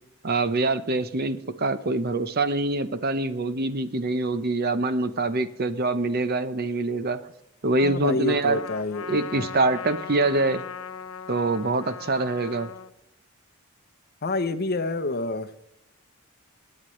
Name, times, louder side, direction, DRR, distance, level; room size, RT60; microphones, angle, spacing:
voice 1, 0.2-7.2 7.6-8.6 9.1-10.6 11.3-12.7, right 2 dB, 45° right, 11 dB, 0.8 m, -25 dB
voice 2, 7.8-9.5 14.2-15.7, left 2 dB, 45° left, 9 dB, 0.9 m, -28 dB
Trumpet, 8.3-12.9, left 7 dB, 80° left, 0.9 m, -38 dB
24.5 x 9.7 x 3.2 m, 0.83 s
head